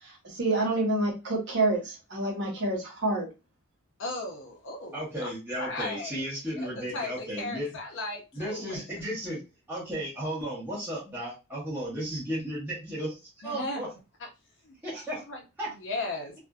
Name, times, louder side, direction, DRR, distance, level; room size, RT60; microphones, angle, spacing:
voice 1, 0.0-3.3, right 2 dB, 55° right, -1 dB, 0.9 m, -28 dB
voice 2, 4.0-5.3 5.6-6.1 6.8-8.8 13.4-13.8 14.6-14.8 15.3-15.4 15.8-16.3, left 2 dB, 55° left, 0 dB, 0.6 m, -36 dB
voice 3, 4.9-7.7 8.3-9.4 9.7-13.9 14.8-15.2 15.6-15.7, equal, 10° right, -9 dB, 1.0 m, -34 dB
2.6 x 2.4 x 2.3 m, 0.27 s
head